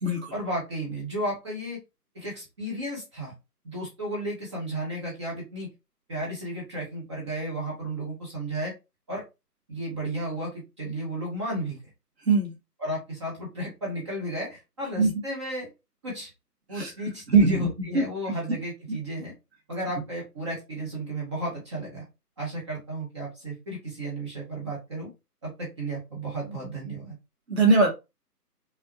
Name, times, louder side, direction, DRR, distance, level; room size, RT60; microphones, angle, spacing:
voice 1, 0.3-1.8 2.1-3.3 3.6-5.7 6.1-8.7 9.1-9.2 9.7-11.8 12.8-15.7 16.0-16.3 16.7-19.3 19.7-22.0 22.4-25.1 25.4-27.1, right 1 dB, 15° right, -3 dB, 1.0 m, -33 dB
voice 2, 17.3-18.1 27.5-27.9, right 3 dB, 40° right, -1 dB, 2.2 m, -21 dB
5.5 x 2.8 x 2.9 m, 0.25 s
figure-of-eight pair, 145°, 49 cm